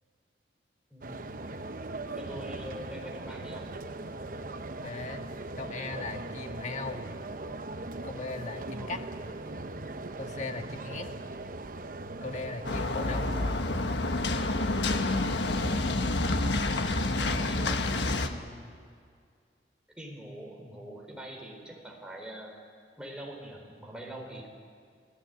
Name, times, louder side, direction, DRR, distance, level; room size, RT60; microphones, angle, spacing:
voice 1, 0.9-1.4 2.2-3.7 8.7-9.4 10.7-10.9 17.2-18.7 20.0-22.5 23.0-24.5, right 1 dB, 5° right, 0 dB, 4.1 m, -44 dB
sound 1, 1.0-13.6, right 2 dB, 50° right, 1.0 m, -40 dB
voice 2, 4.8-5.3 5.6-7.0 8.0-9.0 10.2-11.1 12.2-13.4, left 3 dB, 40° left, 5 dB, 1.6 m, -38 dB
sound 2, 12.7-18.3, left 2 dB, 80° left, 1.4 m, -28 dB
28.0 x 17.0 x 9.2 m, 2.2 s
head